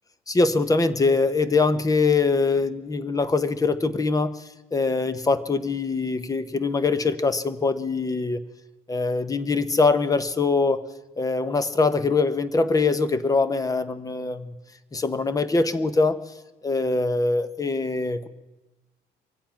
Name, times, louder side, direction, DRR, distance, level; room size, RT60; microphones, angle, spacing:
voice 1, 0.3-4.4 4.7-8.4 8.9-10.8 11.2-14.5 14.9-16.2 16.6-18.3, left 3 dB, 20° left, 13 dB, 0.9 m, -23 dB
24.0 x 8.5 x 5.8 m, 1.0 s
cardioid pair, 110°, 17 cm